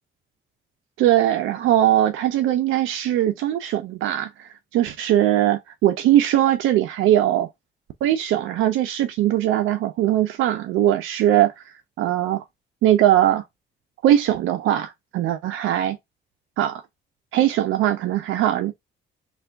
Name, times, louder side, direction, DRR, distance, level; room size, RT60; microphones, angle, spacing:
voice 1, 1.0-7.5 8.0-11.6 12.0-12.4 12.8-13.4 14.0-16.0 16.6-16.8 17.3-18.7, right 12 dB, 85° right, 0.5 m, -20 dB
3.4 x 2.3 x 3.3 m
cardioid pair, 90°, 20 cm